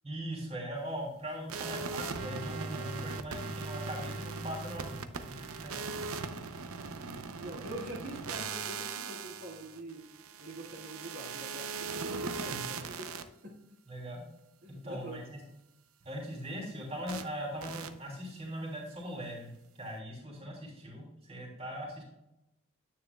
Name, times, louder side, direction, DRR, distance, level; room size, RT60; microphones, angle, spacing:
voice 1, 0.0-5.9 12.5-12.7 13.9-14.2 14.8-15.4 16.0-22.0, equal, 30° right, -2 dB, 2.9 m, -40 dB
sound 1, 1.5-13.2 17.1-17.2 17.6-17.9, right 4 dB, 85° right, 0.7 m, -39 dB
voice 2, 6.9-10.0 10.4-13.8 14.6-15.2, right 1 dB, 55° right, -6 dB, 2.3 m, -45 dB
10.0 x 9.0 x 2.3 m, 0.88 s
head